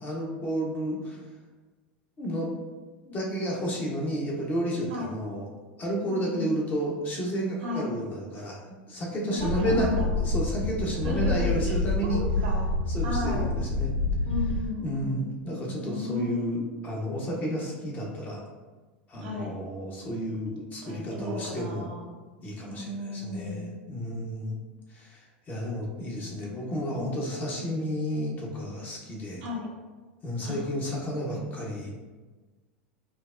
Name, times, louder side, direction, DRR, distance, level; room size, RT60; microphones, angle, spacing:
voice 1, 0.0-1.2 2.2-2.5 3.0-5.5 5.8-9.9 10.2-12.2 12.9-13.9 14.8-18.4 19.1-21.9 22.4-24.6 24.9-29.4 30.2-31.9, equal, 30° left, -2 dB, 0.9 m, -31 dB
voice 2, 6.1-6.6 7.6-7.9 9.4-10.1 11.0-12.7 13.0-13.5 14.3-15.3 15.6-16.4 19.2-19.5 20.8-22.1 22.7-23.7 29.4-29.7 30.4-30.7 31.3-31.5, left 1 dB, 70° right, -2 dB, 0.8 m, -34 dB
sound 1, 9.4-14.6, left 2 dB, 50° left, 1.4 m, -27 dB
4.3 x 2.1 x 2.5 m, 1.3 s
hypercardioid pair, 90°, 6 cm